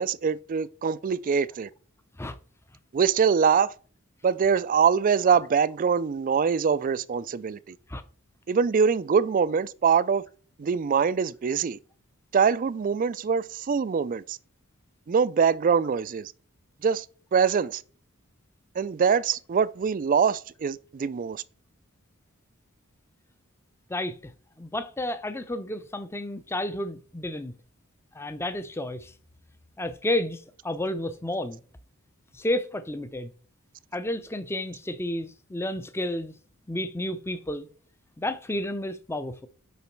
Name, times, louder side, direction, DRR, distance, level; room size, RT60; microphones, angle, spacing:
voice 1, 0.0-1.7 2.9-3.7 4.2-7.8 8.5-10.2 10.6-11.8 12.3-14.4 15.1-16.3 16.8-17.1 17.3-17.8 18.8-21.4, right 6 dB, 40° right, 0.3 m, -23 dB
voice 2, 23.9-24.3 24.6-27.5 28.1-29.1 29.8-31.6 32.3-33.3 33.9-36.4 36.7-37.7 38.2-39.5, left 1 dB, 10° left, 0.5 m, -31 dB
6.8 x 5.2 x 4.5 m
head